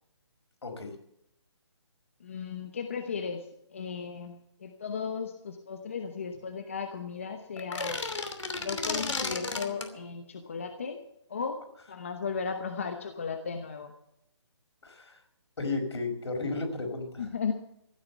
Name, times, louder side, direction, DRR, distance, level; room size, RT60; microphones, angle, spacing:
voice 1, 0.6-1.0 14.8-15.2 15.6-17.3, left 3 dB, 65° left, 3 dB, 5.3 m, -34 dB
voice 2, 2.2-8.0 8.6-11.0 11.3-11.6 11.9-13.9 17.2-17.5, left 5 dB, 25° left, 6 dB, 1.0 m, -35 dB
sound 1, 7.6-9.9, left 3 dB, 85° left, 2.9 m, -33 dB
15.0 x 9.6 x 7.1 m, 0.77 s
hypercardioid pair, 180°, 15 cm